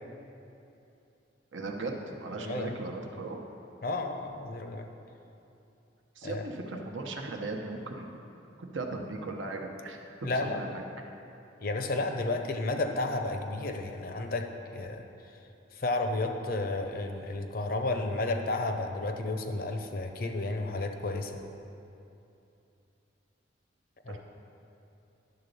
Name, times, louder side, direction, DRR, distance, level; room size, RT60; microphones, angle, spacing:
voice 1, 1.5-3.4 6.2-8.2 8.7-10.8 24.1-24.2, right 2 dB, 75° right, 2 dB, 0.9 m, -37 dB
voice 2, 2.4-2.7 3.8-4.9 6.2-6.4 10.2-10.7 11.6-14.5 14.7-15.1 15.7-21.4 24.1-24.2, left 2 dB, 50° left, 5 dB, 0.6 m, -32 dB
10.5 x 4.0 x 6.7 m, 2.8 s
head